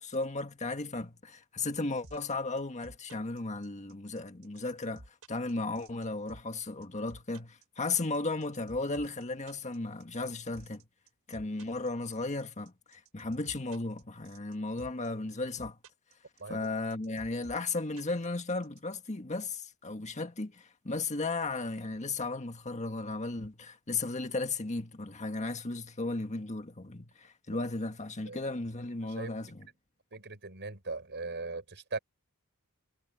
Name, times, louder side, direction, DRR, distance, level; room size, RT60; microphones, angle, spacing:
voice 1, 0.0-10.8 11.3-15.8 16.5-29.6, left 3 dB, 35° left, 1.6 m, -35 dB
sound 1, 2.0-18.8, right 2 dB, 90° right, 5.6 m, -53 dB
voice 2, 29.0-29.3 30.1-32.0, right 3 dB, 55° right, 5.6 m, -39 dB
head